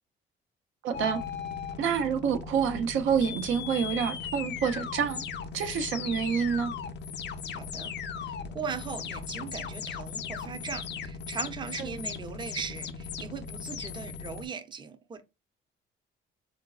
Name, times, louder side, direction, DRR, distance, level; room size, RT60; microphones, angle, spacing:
voice 1, 0.8-1.2 1.8-5.2 5.5-6.7 11.8-12.1, right 7 dB, 85° right, 0.7 m, -28 dB
sound 1, 0.9-14.5, left 6 dB, 60° left, 0.5 m, -37 dB
voice 2, 7.5-7.9 8.2-15.2, right 6 dB, 25° right, 0.5 m, -39 dB
3.7 x 2.6 x 2.3 m
cardioid pair, 90°, 20 cm